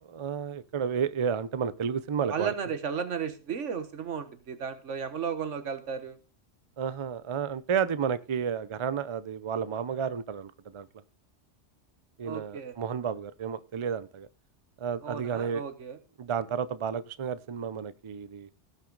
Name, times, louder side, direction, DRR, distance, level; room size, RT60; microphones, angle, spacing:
voice 1, 0.0-2.5 6.8-10.9 12.2-14.3 14.8-15.6 16.2-18.5, right 7 dB, 50° right, 16 dB, 0.3 m, -31 dB
voice 2, 2.3-6.2 12.2-12.7 15.0-16.0, right 6 dB, 75° right, 10 dB, 1.4 m, -34 dB
17.0 x 6.0 x 3.9 m, 0.35 s
omnidirectional pair, 1.2 m